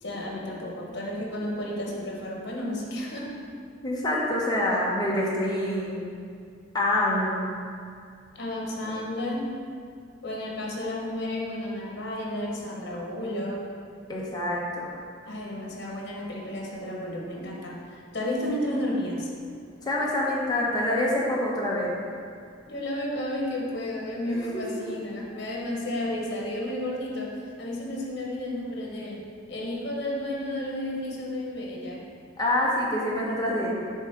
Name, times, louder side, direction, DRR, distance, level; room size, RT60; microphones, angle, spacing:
voice 1, 0.0-3.3 8.3-9.5 10.2-13.7 15.3-19.3 22.7-32.0, left 1 dB, 55° left, -2 dB, 1.3 m, -32 dB
voice 2, 3.8-6.0 6.7-7.4 8.8-8.9 14.1-14.9 18.7-18.9 19.8-21.9 24.3-24.8 32.4-33.7, left 1 dB, 20° left, -4 dB, 1.1 m, -26 dB
7.0 x 3.7 x 5.9 m, 2.3 s
head